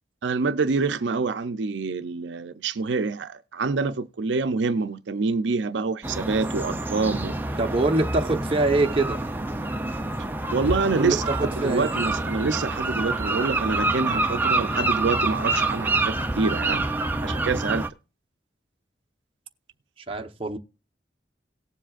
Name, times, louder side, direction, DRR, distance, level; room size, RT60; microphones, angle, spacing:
voice 1, 0.2-7.4 10.5-16.9 17.2-17.9, right 4 dB, 85° right, 0.5 m, -26 dB
sound 1, 6.0-17.9, right 2 dB, 10° right, 0.6 m, -27 dB
voice 2, 7.6-9.2 10.9-11.2 11.6-11.9 20.1-20.6, right 2 dB, 30° right, 1.0 m, -24 dB
18.0 x 7.5 x 2.4 m
head